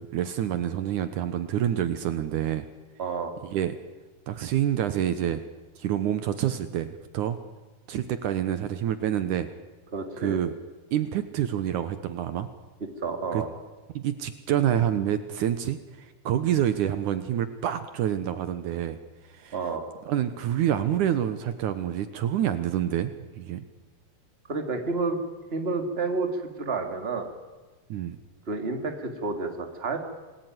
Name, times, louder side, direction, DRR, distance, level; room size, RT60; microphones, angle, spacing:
voice 1, 0.0-2.7 3.4-3.8 4.3-5.4 5.8-7.4 7.9-9.5 10.2-10.5 10.9-12.5 13.3-13.4 13.9-19.0 19.2-19.6 20.0-23.7 27.9-28.2, right 10 dB, 70° right, 11 dB, 2.4 m, -27 dB
voice 2, 3.0-3.3 9.9-10.4 13.0-13.5 19.5-19.8 24.5-25.2 25.5-27.3 28.5-30.0, right 3 dB, 20° right, 5 dB, 2.5 m, -30 dB
28.0 x 19.0 x 9.5 m, 1.3 s
omnidirectional pair, 3.8 m